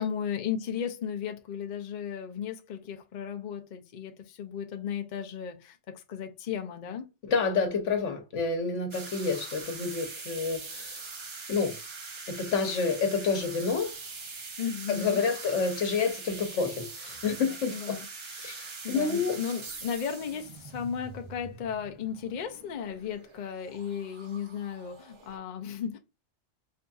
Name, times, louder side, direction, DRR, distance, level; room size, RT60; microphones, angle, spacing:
voice 1, 0.0-7.1 14.6-15.2 17.6-18.1 18.8-26.0, left 8 dB, 50° left, 0.6 m, -35 dB
voice 2, 7.2-11.0 11.5-11.8 12.3-13.9 14.9-18.0 18.2-19.4, left 5 dB, 85° left, 1.2 m, -29 dB
sound 1, 8.9-25.4, right 4 dB, 40° right, 0.4 m, -43 dB
4.6 x 2.6 x 2.3 m
omnidirectional pair, 1.2 m